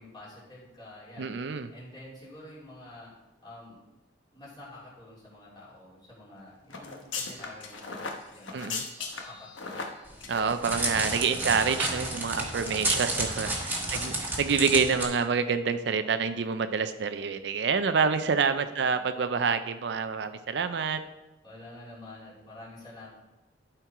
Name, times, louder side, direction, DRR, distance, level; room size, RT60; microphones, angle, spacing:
voice 1, 0.0-3.1 3.4-3.8 4.3-8.6 8.9-9.8 13.8-14.2 15.0-15.1 18.8-19.0 20.2-20.4 21.4-23.1, left 1 dB, 25° left, -8 dB, 2.9 m, -48 dB
voice 2, 1.2-1.7 8.5-8.8 10.3-21.0, right 5 dB, 65° right, 10 dB, 0.4 m, -27 dB
sound 1, 6.7-11.4 11.7-11.8 12.2-13.0 13.4-13.5 13.9-14.1 14.3-14.5, left 4 dB, 90° left, 1.1 m, -39 dB
Crackle, 10.1-15.0, right 2 dB, 10° right, 1.3 m, -31 dB
11.5 x 4.5 x 4.6 m, 1.0 s
head